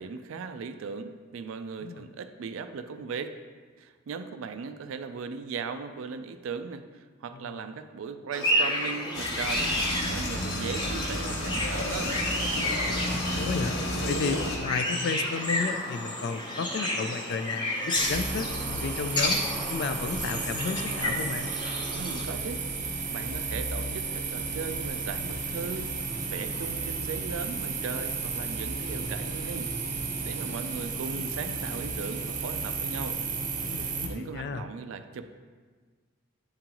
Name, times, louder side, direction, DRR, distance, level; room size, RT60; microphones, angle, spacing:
voice 1, 0.0-3.4 3.8-9.7 10.1-12.2 21.9-33.2 33.7-35.2, right 5 dB, 75° right, 9 dB, 0.3 m, -38 dB
sound 1, 8.3-22.2, left 1 dB, 20° left, 0.9 m, -31 dB
sound 2, 9.1-14.6, left 1 dB, 75° left, 1.1 m, -31 dB
voice 2, 13.0-13.8 14.1-19.4 19.7-21.5 33.6-34.7, left 5 dB, 55° left, 9 dB, 0.3 m, -33 dB
sound 3, 17.9-34.1, right 4 dB, 40° right, 0.7 m, -33 dB
9.3 x 3.8 x 2.9 m, 1.5 s
head